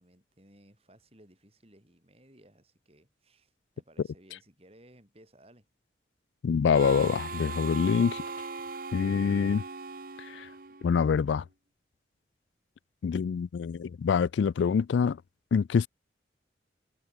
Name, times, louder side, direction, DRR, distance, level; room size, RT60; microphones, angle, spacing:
voice 1, 0.0-5.7, right 1 dB, 35° right, 6.2 m, -59 dB
voice 2, 6.4-8.2 8.9-9.6 10.3-10.5 10.8-11.4 13.0-15.2 15.5-15.9, left 6 dB, 80° left, 0.3 m, -25 dB
Harmonica, 6.7-11.2, right 4 dB, 50° right, 1.0 m, -39 dB
head